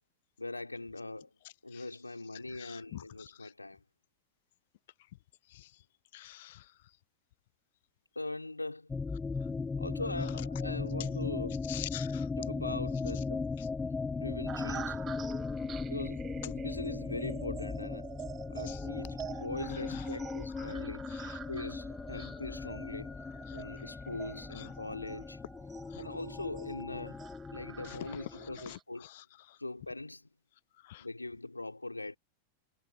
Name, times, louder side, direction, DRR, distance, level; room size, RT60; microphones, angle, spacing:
voice 1, 0.4-1.3 1.6-3.8 8.2-8.9 9.8-11.6 12.4-13.4 14.2-15.0 15.9-18.1 18.5-21.0 21.5-23.2 23.5-25.4 26.0-27.2 27.5-29.1 29.6-30.3 31.0-32.2, left 2 dB, 85° left, 4.1 m, -41 dB
voice 2, 2.6-3.5 5.5-5.7 6.1-6.6 11.7-12.3 18.7-18.8 19.9-20.0 21.1-21.4 22.2-22.3 23.5-23.6 24.6-24.7 25.9-26.0 27.9-28.0 28.7-29.2 30.8-31.0, left 16 dB, 55° left, 0.6 m, -46 dB
sound 1, 8.9-28.7, left 4 dB, 15° left, 1.1 m, -38 dB
sound 2, 14.5-28.8, right 9 dB, 25° right, 7.6 m, -47 dB
figure-of-eight pair, 90°, 0 cm